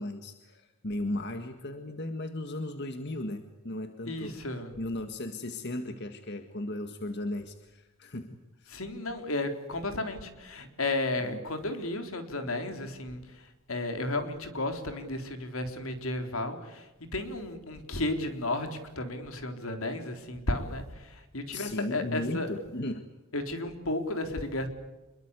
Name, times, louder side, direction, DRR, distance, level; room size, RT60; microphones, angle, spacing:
voice 1, 0.0-8.8 11.2-11.4 21.5-23.0, left 1 dB, 55° left, 7 dB, 1.8 m, -36 dB
voice 2, 4.1-4.7 8.7-22.5 23.3-24.7, left 2 dB, 80° left, 7 dB, 3.9 m, -33 dB
27.5 x 22.5 x 8.3 m, 1.1 s
head